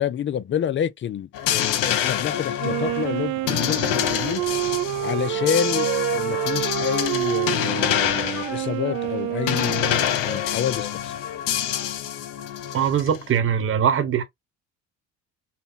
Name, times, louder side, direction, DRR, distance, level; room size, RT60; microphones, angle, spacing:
voice 1, 0.0-4.4 5.0-9.8 10.2-11.1, left 9 dB, 35° left, 0.5 m, -28 dB
sound 1, 1.3-13.2, left 11 dB, 80° left, 1.0 m, -26 dB
Wind instrument woodwind instrument, 2.6-10.3, right 17 dB, 75° right, 0.5 m, -28 dB
Wind instrument woodwind instrument 2, 4.5-7.5 7.8-8.0 8.3-10.9 11.2-11.9, left 5 dB, 65° left, 1.9 m, -39 dB
voice 2, 12.7-14.2, right 8 dB, 40° right, 1.1 m, -21 dB
5.7 x 2.2 x 4.0 m
cardioid pair, 105°, 32 cm